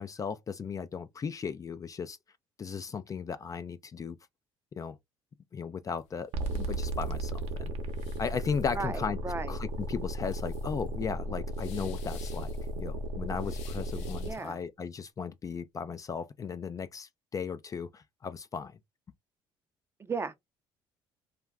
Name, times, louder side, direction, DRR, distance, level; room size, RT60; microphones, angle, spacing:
voice 1, 0.0-2.2 2.6-4.2 4.7-5.0 5.5-7.7 8.2-9.2 9.5-12.5 12.8-18.8, left 6 dB, 30° left, 0.4 m, -36 dB
sound 1, 5.9-14.6, left 9 dB, 85° left, 0.6 m, -56 dB
sound 2, 6.3-14.3, right 1 dB, 70° right, 0.8 m, -35 dB
voice 2, 8.7-9.5 14.2-14.6 20.0-20.4, right 4 dB, 25° right, 0.5 m, -35 dB
2.3 x 2.2 x 3.3 m
supercardioid pair, 85°, 11 cm